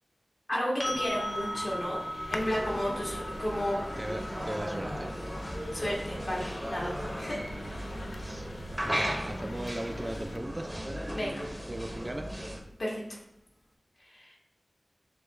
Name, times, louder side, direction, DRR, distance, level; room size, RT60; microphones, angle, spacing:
voice 1, 0.5-2.0 2.3-3.8 5.7-7.4 11.1-11.5 12.8-13.2 14.0-14.4, equal, 55° left, -5 dB, 1.6 m, -33 dB
sound 1, 0.8-8.6 11.4-11.5, equal, 35° left, 0.6 m, -40 dB
sound 2, 0.9-10.4, left 2 dB, 80° left, 0.3 m, -43 dB
sound 3, 2.3-12.6, equal, 10° right, 0.7 m, -36 dB
voice 2, 4.0-5.2 8.2-8.4 8.8-10.7 11.7-12.3, right 1 dB, 25° right, 5 dB, 0.4 m, -38 dB
6.3 x 2.3 x 3.1 m, 0.87 s
wide cardioid pair, 70°, 0 cm